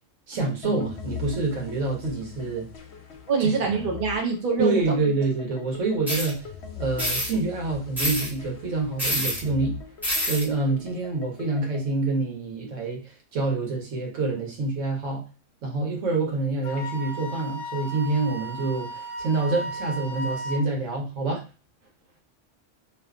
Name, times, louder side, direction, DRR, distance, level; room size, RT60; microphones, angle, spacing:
voice 1, 0.3-2.7 3.4-3.5 4.6-9.8 10.3-15.2 15.6-21.4, right 3 dB, 90° right, 0 dB, 1.2 m, -27 dB
sound 1, 0.6-11.9, left 7 dB, 65° left, 0.8 m, -41 dB
voice 2, 3.3-4.8, right 4 dB, 50° right, 1 dB, 0.8 m, -24 dB
sound 2, 6.1-6.3 7.0-7.3 8.0-8.3 9.0-9.4 10.0-10.4, equal, ahead, 0.9 m, -26 dB
Wind instrument woodwind instrument, 16.6-20.6, right 1 dB, 90° left, 1.0 m, -35 dB
2.6 x 2.4 x 2.3 m, 0.32 s
omnidirectional pair, 1.3 m